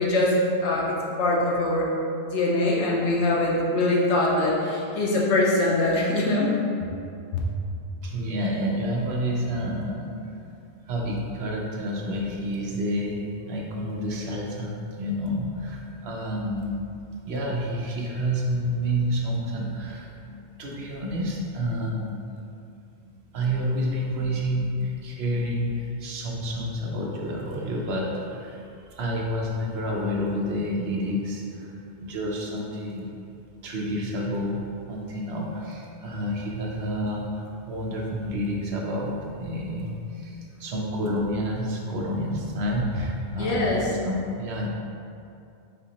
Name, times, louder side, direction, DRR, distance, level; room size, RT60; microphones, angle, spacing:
voice 1, 0.0-1.9 2.3-6.5 43.3-43.9, left 2 dB, 75° left, -3 dB, 1.0 m, -23 dB
voice 2, 8.0-10.1 10.8-17.0 17.2-22.4 23.3-33.1 33.6-34.6 34.9-44.7, equal, 70° right, -2 dB, 0.9 m, -29 dB
4.2 x 2.8 x 4.0 m, 2.5 s
omnidirectional pair, 1.2 m